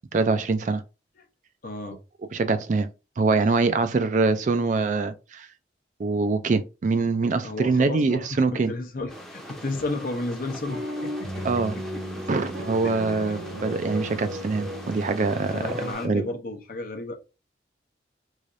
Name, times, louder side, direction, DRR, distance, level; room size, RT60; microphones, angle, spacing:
voice 1, 0.1-0.8 2.3-5.5 6.0-8.7 11.4-11.8 12.3-15.6 16.0-16.2, right 3 dB, 40° right, 0.3 m, -24 dB
voice 2, 1.6-2.0 7.4-12.0 12.8-13.3 15.5-17.1, left 2 dB, 50° left, 0.7 m, -33 dB
sound 1, 9.1-16.1, equal, ahead, 0.7 m, -42 dB
sound 2, 10.6-15.9, equal, 65° right, 0.8 m, -35 dB
3.7 x 3.2 x 2.5 m
head